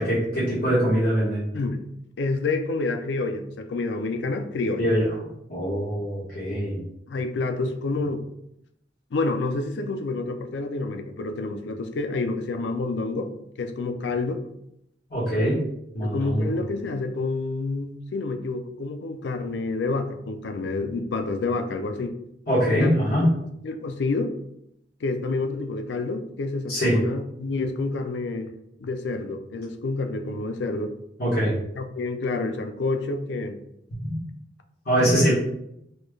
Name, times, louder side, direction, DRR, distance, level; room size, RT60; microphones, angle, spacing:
voice 1, 0.0-1.5 4.8-5.1 5.5-6.8 15.1-15.6 15.9-16.5 22.5-23.3 26.7-27.0 31.2-31.5 34.0-34.1 34.8-35.3, equal, 55° left, -9 dB, 1.4 m, -23 dB
voice 2, 2.2-4.9 7.1-8.2 9.1-13.3 13.6-14.4 16.0-22.1 22.8-23.3 23.6-24.3 25.0-28.5 28.8-30.9 31.8-33.6 35.0-35.3, left 3 dB, 70° left, 7 dB, 0.4 m, -28 dB
4.2 x 2.3 x 3.1 m, 0.78 s
head